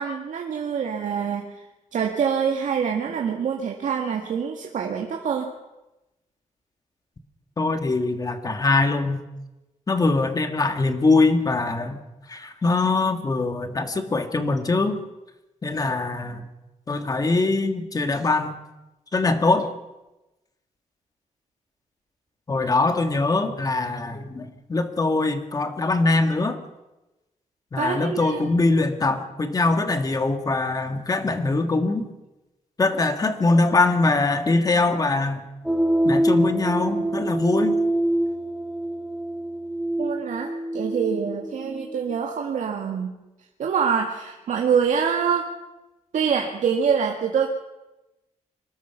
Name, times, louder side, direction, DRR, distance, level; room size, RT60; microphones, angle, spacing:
voice 1, 0.0-1.6 1.9-5.5 27.8-28.4 40.0-43.2 43.6-45.5 46.1-47.5, right 7 dB, 85° right, 1 dB, 2.0 m, -25 dB
voice 2, 7.6-9.2 9.9-12.0 12.3-15.0 15.6-16.5 16.9-18.6 19.1-19.7 22.5-26.6 27.7-32.1 32.8-35.4 36.0-37.8, left 3 dB, 30° left, 7 dB, 1.9 m, -22 dB
sound 1, 35.6-42.2, right 1 dB, 5° right, 2.4 m, -25 dB
24.5 x 20.0 x 5.9 m, 1.0 s
wide cardioid pair, 155°, 13 cm